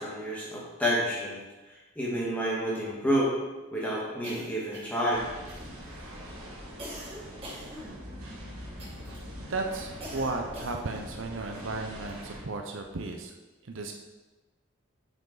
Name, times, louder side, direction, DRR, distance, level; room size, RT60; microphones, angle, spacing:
voice 1, 0.0-1.4 2.0-3.3 3.7-5.3, equal, 5° left, -6 dB, 1.8 m, -29 dB
sound 1, 4.2-5.1 5.5-6.0 6.8-8.3 8.8-9.2 10.0-11.0, equal, 25° right, 1.9 m, -43 dB
sound 2, 5.1-12.4, equal, 75° right, 2.1 m, -43 dB
voice 2, 9.4-13.3 13.6-13.9, right 3 dB, 60° right, 3 dB, 0.6 m, -34 dB
7.7 x 4.9 x 4.0 m, 1.2 s
head